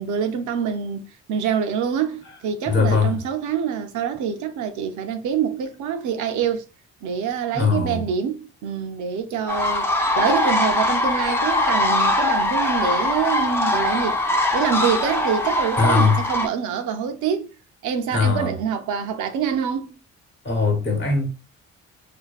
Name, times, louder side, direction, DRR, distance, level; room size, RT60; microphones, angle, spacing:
voice 1, 0.0-6.6 7.0-14.2 14.5-17.5 17.8-19.9, right 7 dB, 75° right, 0.5 m, -26 dB
voice 2, 2.6-3.2 7.5-8.1 15.8-16.2 18.1-18.5 20.4-21.3, left 4 dB, 35° left, 1.0 m, -20 dB
sound 1, 9.5-16.5, left 2 dB, 10° left, 0.4 m, -21 dB
2.5 x 2.2 x 2.3 m
cardioid pair, 90°, 30 cm